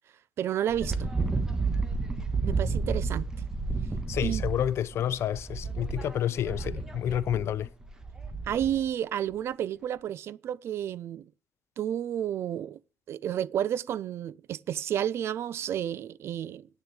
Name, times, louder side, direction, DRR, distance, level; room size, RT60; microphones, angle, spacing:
voice 1, 0.4-1.1 2.4-3.3 4.2-4.4 8.5-11.3 11.8-12.8 13.1-16.7, right 10 dB, 55° right, 0.4 m, -31 dB
Wind, 0.7-8.8, right 4 dB, 10° right, 1.4 m, -31 dB
voice 2, 4.1-7.7, left 10 dB, 60° left, 0.7 m, -29 dB
9.0 x 6.9 x 8.0 m
cardioid pair, 155°, 5 cm